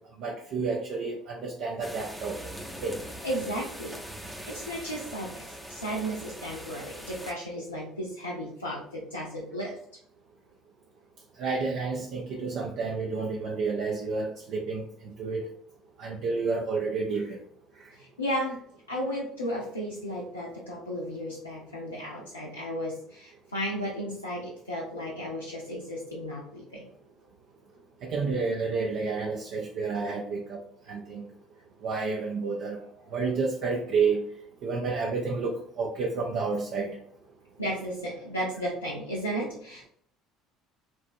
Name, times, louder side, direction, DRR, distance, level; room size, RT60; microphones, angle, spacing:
voice 1, 0.2-2.3 2.8-3.0 11.4-14.8 15.2-15.4 16.0-17.4 28.0-30.6 30.9-31.2 31.8-32.8 33.1-34.2 34.6-36.9, right 4 dB, 55° right, 1 dB, 0.3 m, -30 dB
sound 1, 1.8-7.3, equal, 5° right, 0.6 m, -42 dB
voice 2, 3.2-3.9 4.5-9.7 18.0-18.6 18.9-26.9 37.6-39.9, equal, 85° left, -5 dB, 0.5 m, -34 dB
2.9 x 2.3 x 2.5 m, 0.64 s
figure-of-eight pair, 60°, 0 cm